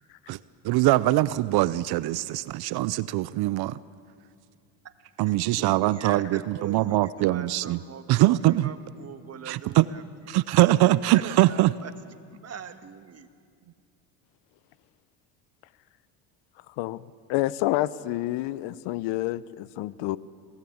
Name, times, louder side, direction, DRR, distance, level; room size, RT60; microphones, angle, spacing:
voice 1, 0.6-3.8 5.2-7.8 8.1-8.7 9.5-9.8 10.3-11.7, right 16 dB, 55° right, 18 dB, 0.6 m, -22 dB
voice 2, 5.2-10.1 11.1-11.9 12.3-13.3, right 7 dB, 35° right, 9 dB, 1.6 m, -42 dB
voice 3, 17.3-20.2, left 16 dB, 65° left, 18 dB, 0.8 m, -28 dB
27.0 x 18.0 x 8.6 m, 2.3 s
supercardioid pair, 110°, 46 cm